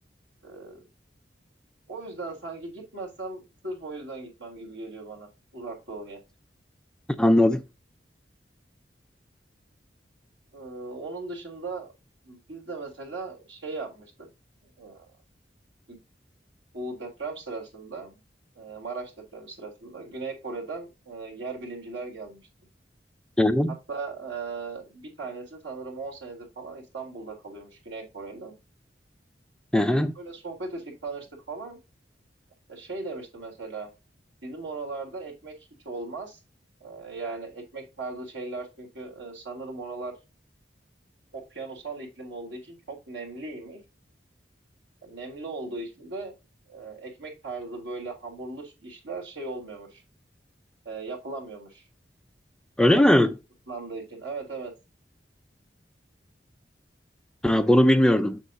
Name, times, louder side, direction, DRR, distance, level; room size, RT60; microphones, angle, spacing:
voice 1, 0.4-0.8 1.9-6.2 10.5-11.9 12.2-14.3 14.8-15.1 15.9-16.0 16.7-18.2 18.6-22.4 23.9-28.5 30.2-31.8 32.7-33.9 34.4-35.5 35.8-36.4 36.8-40.1 41.3-43.8 45.0-46.3 46.7-50.0 50.8-51.8 52.8-53.1 53.7-54.7, right 3 dB, 90° right, 3.7 m, -38 dB
voice 2, 7.2-7.6 23.4-23.7 29.7-30.1 52.8-53.3 57.4-58.4, left 1 dB, 5° left, 0.4 m, -19 dB
7.6 x 6.2 x 2.8 m
head